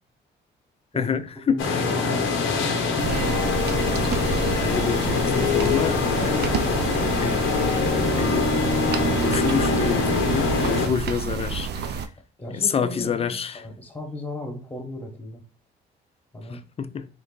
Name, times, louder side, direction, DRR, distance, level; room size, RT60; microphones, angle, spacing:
voice 1, 1.0-1.9 4.5-6.5 7.2-7.9 8.2-8.5 8.9-12.0 12.5-13.6 16.5-17.1, left 7 dB, 30° left, 0.4 m, -28 dB
voice 2, 1.5-3.3 12.4-15.4 16.3-16.6, left 1 dB, 10° left, 1.0 m, -36 dB
sound 1, 1.6-10.9, left 4 dB, 85° left, 0.8 m, -23 dB
sound 2, 3.0-12.1, right 6 dB, 55° right, 0.5 m, -29 dB
3.6 x 2.6 x 3.6 m
cardioid pair, 90°, 20 cm